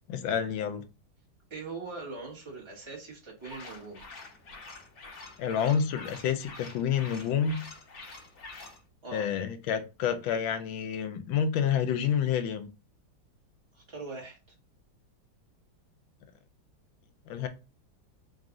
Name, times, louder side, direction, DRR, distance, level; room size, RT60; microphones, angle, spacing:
voice 1, 0.1-0.8 5.4-7.6 9.1-12.7 17.3-17.5, left 8 dB, 80° left, 9 dB, 1.4 m, -29 dB
voice 2, 1.5-4.0 9.0-9.3 13.7-14.4, right 3 dB, 15° right, -3 dB, 1.1 m, -41 dB
sound 1, 3.4-8.8, left 3 dB, 50° left, 1.5 m, -47 dB
4.0 x 2.4 x 3.6 m, 0.30 s
omnidirectional pair, 2.1 m